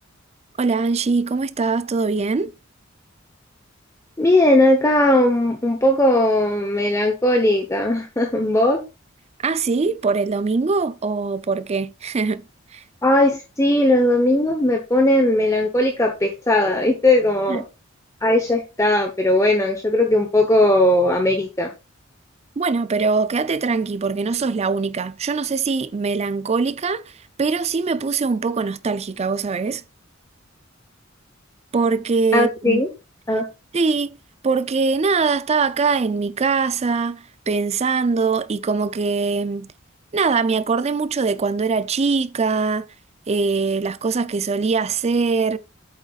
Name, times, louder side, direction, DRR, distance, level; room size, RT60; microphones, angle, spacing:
voice 1, 0.6-2.5 9.4-12.4 12.7-12.8 17.5-17.6 22.6-27.1 27.4-29.8 31.7-32.8 33.7-34.2 34.4-39.7 40.1-42.9 43.3-45.6, right 4 dB, 30° right, 0.4 m, -22 dB
voice 2, 4.2-8.8 13.0-17.6 18.2-21.7 32.3-32.9 33.3-33.5, left 1 dB, 15° left, 0.9 m, -18 dB
8.2 x 8.1 x 2.4 m
head